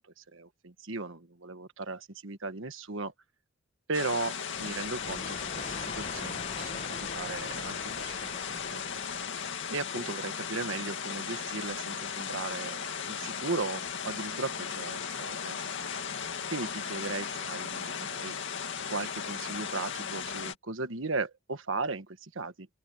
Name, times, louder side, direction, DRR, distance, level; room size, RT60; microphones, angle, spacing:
voice 1, 0.2-3.1 3.9-6.8 7.1-8.8 9.7-15.6 16.5-18.4 18.9-22.7, right 3 dB, 60° right, 1.4 m, -37 dB
sound 1, 3.9-20.6, left 7 dB, 60° left, 2.2 m, -36 dB
sound 2, 4.5-10.1, left 3 dB, 35° left, 1.4 m, -44 dB
open air
head